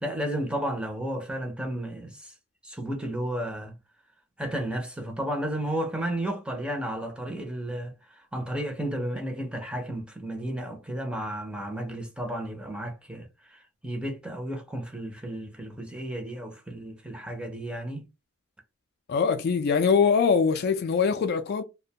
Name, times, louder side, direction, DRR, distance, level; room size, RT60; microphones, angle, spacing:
voice 1, 0.0-2.3 2.6-3.8 4.4-18.1, right 1 dB, 5° right, 0.5 m, -33 dB
voice 2, 19.1-21.6, left 5 dB, 50° left, 0.3 m, -23 dB
2.4 x 2.1 x 2.7 m
head